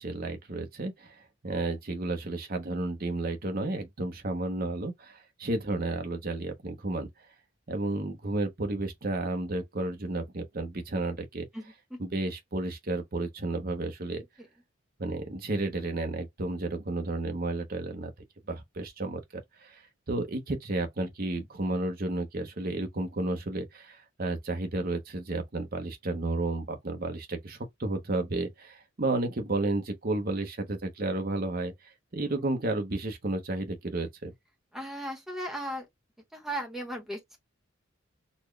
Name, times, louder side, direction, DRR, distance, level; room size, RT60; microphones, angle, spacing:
voice 1, 0.0-7.1 7.7-11.5 12.0-14.2 15.0-18.1 18.5-19.8 20.1-31.7 32.1-34.3, right 2 dB, 45° right, 0.9 m, -32 dB
voice 2, 11.5-12.0 32.4-32.5 34.7-35.9 36.3-37.4, right 1 dB, ahead, 1.0 m, -37 dB
4.2 x 2.2 x 3.2 m
head